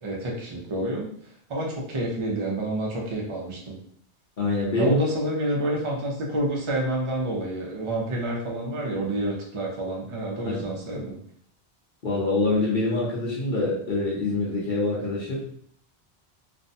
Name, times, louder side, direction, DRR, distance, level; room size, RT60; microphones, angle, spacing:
voice 1, 0.0-1.1 1.5-3.8 4.8-11.2, right 1 dB, 40° right, -2 dB, 0.5 m, -28 dB
voice 2, 4.4-4.9 10.4-10.7 12.0-15.4, left 2 dB, 55° left, -5 dB, 0.9 m, -25 dB
2.5 x 2.1 x 2.6 m, 0.63 s
omnidirectional pair, 1.1 m